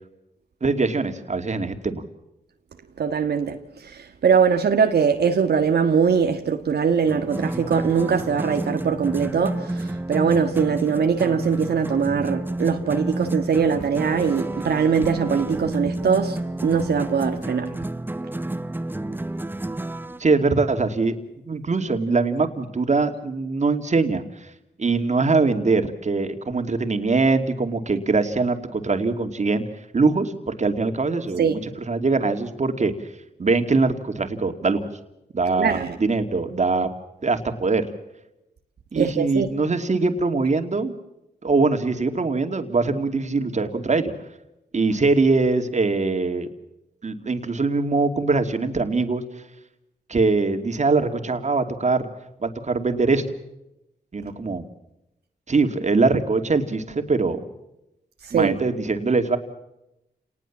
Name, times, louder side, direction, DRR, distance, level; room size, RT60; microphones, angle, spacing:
voice 1, 0.6-2.0 20.2-21.2 21.5-24.5 24.8-29.6 29.9-32.9 33.4-34.9 35.3-36.9 37.2-37.9 38.9-40.9 41.4-44.1 44.7-46.5 47.0-49.2 50.1-52.1 52.4-53.2 54.1-54.7 55.5-57.4 58.3-59.4, right 3 dB, 45° right, 2.7 m, -22 dB
voice 2, 3.0-17.7 31.4-31.6 35.6-35.9 38.9-39.5 58.2-58.5, right 6 dB, 75° right, 1.6 m, -22 dB
sound 1, 7.1-20.2, right 1 dB, 10° right, 0.9 m, -30 dB
29.5 x 19.5 x 7.4 m
cardioid pair, 75°, 17 cm